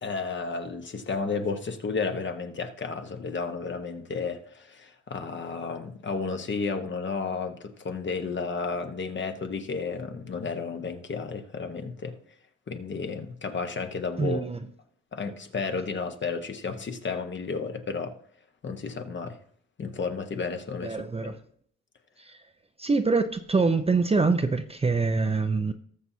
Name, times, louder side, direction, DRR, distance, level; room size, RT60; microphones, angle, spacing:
voice 1, 0.0-12.2 12.7-14.4 15.1-18.1 18.6-19.4 19.8-21.3, left 4 dB, 40° left, 1.1 m, -32 dB
voice 2, 14.2-14.6 20.8-21.4 22.2-22.4 22.8-25.7, right 4 dB, 20° right, 0.6 m, -25 dB
19.0 x 6.9 x 2.8 m
cardioid pair, 90°, 30 cm